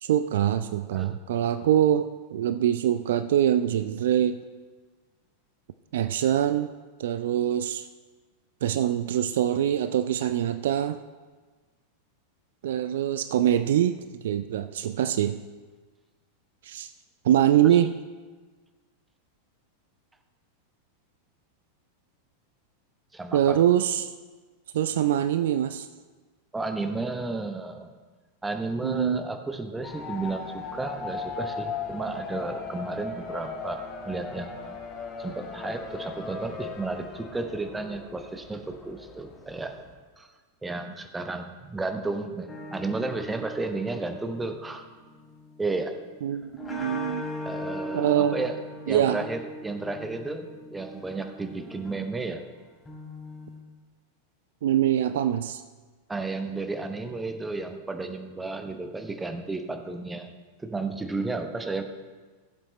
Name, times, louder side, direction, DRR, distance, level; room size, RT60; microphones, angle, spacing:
voice 1, 0.0-4.4 5.9-6.7 7.0-7.9 8.6-11.0 12.6-15.4 16.6-16.9 17.2-17.9 23.3-24.1 24.7-25.9 28.8-29.2 46.2-47.2 47.9-48.4 48.9-49.2 54.6-55.6, right 10 dB, 60° right, 12 dB, 0.3 m, -24 dB
voice 2, 23.1-23.6 26.5-27.9 28.4-34.8 35.2-39.8 40.2-40.3 40.6-44.8 45.6-45.9 47.4-48.6 48.9-52.4 56.1-60.3 60.6-61.8, right 3 dB, 10° right, 6 dB, 0.9 m, -33 dB
sound 1, 29.8-39.9, left 4 dB, 35° left, 1.7 m, -38 dB
sound 2, 42.5-53.6, left 1 dB, 15° left, 2.8 m, -40 dB
16.0 x 7.6 x 3.1 m, 1.4 s
figure-of-eight pair, 90°, 0 cm